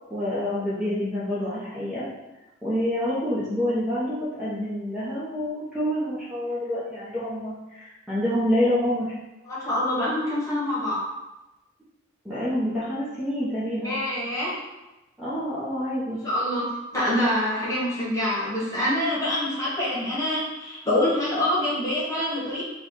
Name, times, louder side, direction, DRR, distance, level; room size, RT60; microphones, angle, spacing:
voice 1, 0.1-2.0 2.6-9.1 12.2-14.0 15.2-16.2, equal, 5° right, -11 dB, 0.9 m, -27 dB
voice 2, 9.5-11.0 13.8-14.5 16.2-16.6 16.9-22.6, left 1 dB, 15° left, -7 dB, 1.4 m, -25 dB
4.3 x 2.3 x 4.3 m, 1.0 s
head